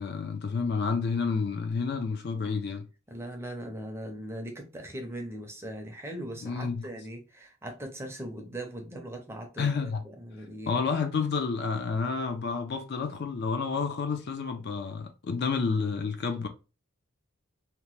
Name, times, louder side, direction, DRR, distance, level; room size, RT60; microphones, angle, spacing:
voice 1, 0.0-2.9 6.4-6.8 9.6-10.0 10.7-16.5, left 5 dB, 50° left, 0.4 m, -30 dB
voice 2, 3.1-10.7, right 1 dB, 10° right, 0.5 m, -40 dB
2.8 x 2.1 x 3.0 m
head